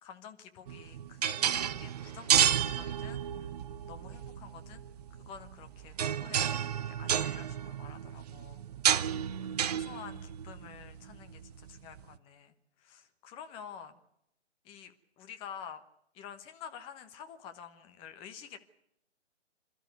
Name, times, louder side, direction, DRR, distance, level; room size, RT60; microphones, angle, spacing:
voice 1, 0.0-3.5 3.8-8.6 9.5-14.0 14.6-15.8 16.1-18.6, left 8 dB, 15° left, 8 dB, 1.2 m, -49 dB
sound 1, 0.7-12.0, right 9 dB, 35° right, 0.7 m, -32 dB
27.0 x 13.0 x 9.4 m, 0.79 s
figure-of-eight pair, 140°, 35 cm